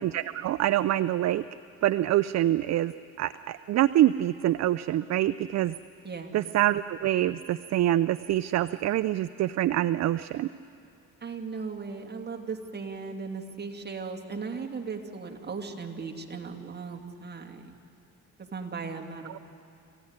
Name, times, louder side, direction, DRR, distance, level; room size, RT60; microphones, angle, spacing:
voice 1, 0.0-1.4 1.8-2.9 3.2-5.7 6.3-10.5 19.3-19.4, right 13 dB, 60° right, 14 dB, 0.5 m, -25 dB
voice 2, 6.0-6.4 11.2-17.7 18.4-19.4, right 4 dB, 35° right, 1 dB, 2.6 m, -37 dB
27.5 x 15.5 x 9.7 m, 2.7 s
cardioid pair, 90°, 30 cm